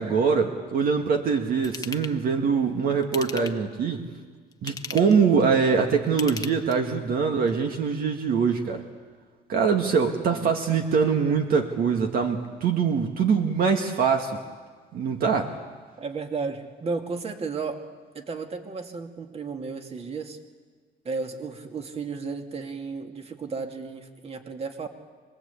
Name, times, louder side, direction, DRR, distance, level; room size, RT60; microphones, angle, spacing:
voice 1, 0.0-4.1 4.6-8.8 9.5-14.4 14.9-15.6, right 6 dB, 60° right, 4 dB, 1.9 m, -23 dB
Ratchet pawl / Tools, 1.6-2.2 3.0-3.7 4.5-5.2 6.1-7.0 7.5-7.6, left 5 dB, 20° left, 1.1 m, -37 dB
voice 2, 10.0-10.5 16.0-17.8 18.1-20.4 21.0-24.9, right 4 dB, 35° right, 5 dB, 2.4 m, -34 dB
26.0 x 20.5 x 8.4 m, 1.5 s
cardioid pair, 110°, 17 cm